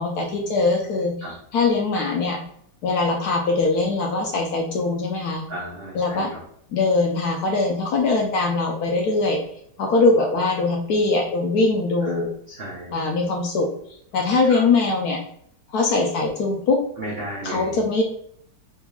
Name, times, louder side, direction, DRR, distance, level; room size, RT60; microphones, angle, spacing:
voice 1, 0.0-2.4 2.8-5.5 5.9-6.3 6.7-9.4 9.8-12.3 12.9-15.2 15.7-16.9 17.4-18.0, left 3 dB, 70° left, 1 dB, 1.0 m, -22 dB
voice 2, 5.5-6.4 12.0-12.1 12.5-12.9 14.5-14.6 17.0-17.8, right 1 dB, 65° right, -5 dB, 0.6 m, -34 dB
3.4 x 3.3 x 2.2 m, 0.67 s
omnidirectional pair, 2.0 m